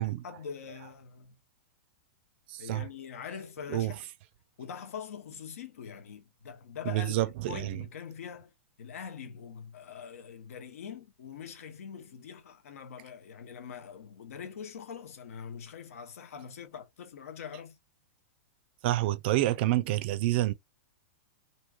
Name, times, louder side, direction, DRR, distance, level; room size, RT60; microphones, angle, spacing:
voice 1, 0.2-1.3 2.6-4.1 4.6-7.1 7.5-8.5 8.8-17.8, left 7 dB, 80° left, 0.9 m, -43 dB
voice 2, 2.5-2.9 3.7-3.9 6.9-7.8 18.8-20.5, right 16 dB, 50° right, 0.4 m, -28 dB
3.0 x 2.6 x 2.3 m
hypercardioid pair, 150°, 8 cm